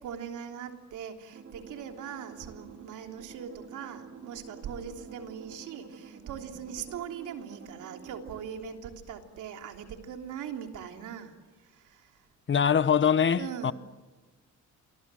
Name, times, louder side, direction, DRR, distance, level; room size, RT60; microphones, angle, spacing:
voice 1, 0.0-11.3 11.6-12.3 13.3-13.7, right 8 dB, 85° right, 3.3 m, -41 dB
sound 1, 1.3-8.4, right 5 dB, 50° right, 4.0 m, -49 dB
voice 2, 12.5-13.7, left 7 dB, 40° left, 1.1 m, -23 dB
29.0 x 24.0 x 7.7 m
cardioid pair, 90°, 30 cm